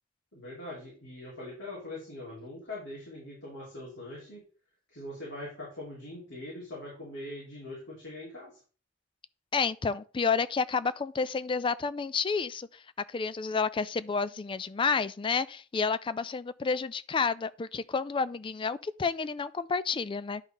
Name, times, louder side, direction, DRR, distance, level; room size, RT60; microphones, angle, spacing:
voice 1, 0.3-4.4 4.9-8.6, left 1 dB, 85° left, 4.4 m, -42 dB
voice 2, 9.5-12.8 13.1-20.4, left 5 dB, 30° left, 0.4 m, -30 dB
10.5 x 5.4 x 3.9 m
head